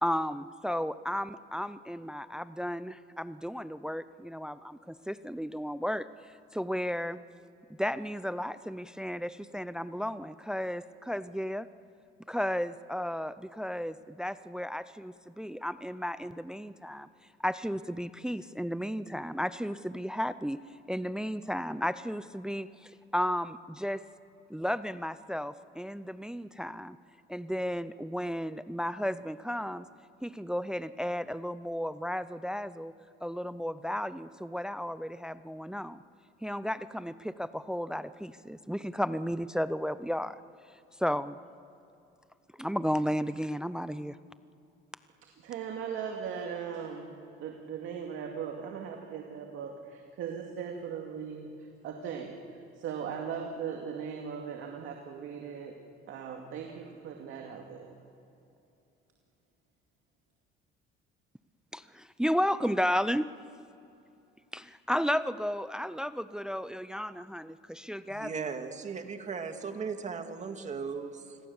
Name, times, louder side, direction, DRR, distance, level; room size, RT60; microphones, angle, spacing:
voice 1, 0.0-6.1 6.5-7.2 7.8-11.7 12.3-17.1 17.4-20.6 20.9-24.0 24.5-27.0 27.3-29.9 30.2-32.9 33.2-36.0 36.4-40.4 41.0-41.4 42.6-44.2 61.7-63.3 64.5-68.3, equal, 5° right, 14 dB, 0.5 m, -33 dB
voice 2, 45.2-47.1 47.4-52.4 52.8-55.8 56.1-58.0, right 7 dB, 70° right, 2 dB, 2.3 m, -39 dB
voice 3, 68.1-71.4, right 5 dB, 35° right, 6 dB, 2.1 m, -37 dB
28.0 x 21.5 x 7.2 m, 2.8 s
cardioid pair, 125°, 21 cm